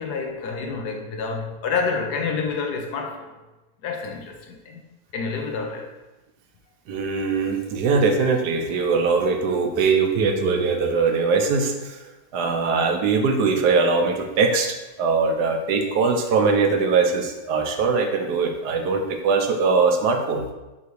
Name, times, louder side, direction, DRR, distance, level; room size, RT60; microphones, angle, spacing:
voice 1, 0.0-3.3 3.8-4.8 5.1-5.9, left 5 dB, 75° left, 2 dB, 1.4 m, -28 dB
voice 2, 6.9-12.0 12.3-20.5, right 4 dB, 80° right, 4 dB, 1.2 m, -21 dB
5.8 x 5.3 x 3.1 m, 1.1 s
omnidirectional pair, 1.8 m